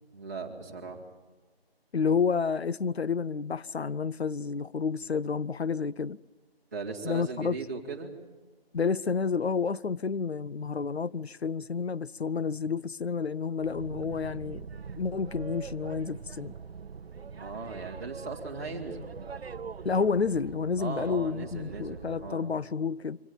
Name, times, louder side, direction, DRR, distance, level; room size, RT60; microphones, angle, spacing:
voice 1, 0.1-1.0 6.7-8.1 17.3-19.1 20.8-22.5, right 4 dB, 15° right, 2.2 m, -38 dB
voice 2, 1.9-6.2 7.0-7.6 8.7-14.7 15.0-16.5 19.8-23.2, left 5 dB, 80° left, 0.7 m, -30 dB
Boat Water vehicle, 13.6-22.4, right 6 dB, 75° right, 0.6 m, -43 dB
25.0 x 17.5 x 9.1 m
figure-of-eight pair, 175°, 31 cm